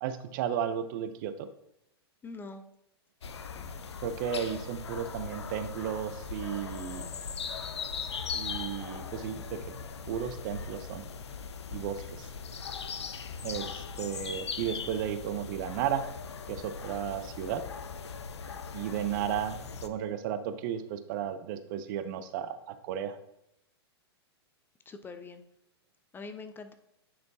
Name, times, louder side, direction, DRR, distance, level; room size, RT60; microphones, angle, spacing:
voice 1, 0.0-1.5 4.0-7.1 8.3-9.8 10.1-11.0 11.7-12.3 13.4-16.1 16.5-17.7 18.7-23.2, right 9 dB, 50° right, 11 dB, 0.6 m, -34 dB
voice 2, 2.2-2.6 3.5-3.8 24.9-25.4 26.1-26.7, left 3 dB, 15° left, 9 dB, 0.4 m, -44 dB
sound 1, 3.2-19.9, left 6 dB, 85° left, 0.6 m, -39 dB
9.4 x 4.4 x 2.7 m, 0.79 s
hypercardioid pair, 110°, 14 cm